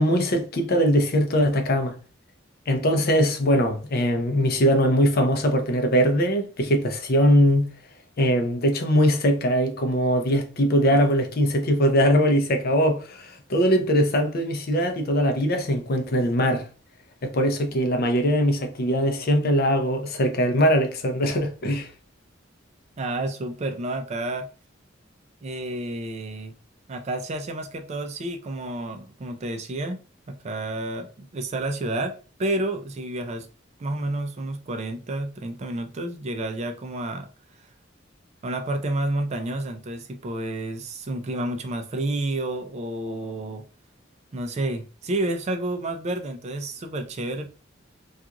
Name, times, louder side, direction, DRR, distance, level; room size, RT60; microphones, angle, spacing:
voice 1, 0.0-1.9 2.7-7.6 8.2-16.7 17.2-21.9, equal, 50° left, 0.5 m, -21 dB
voice 2, 23.0-24.5 25.4-26.5 26.9-30.0 30.3-33.5 33.8-37.3 38.4-43.6 44.3-47.5, right 1 dB, 35° right, 0.4 m, -30 dB
2.4 x 2.4 x 2.8 m
head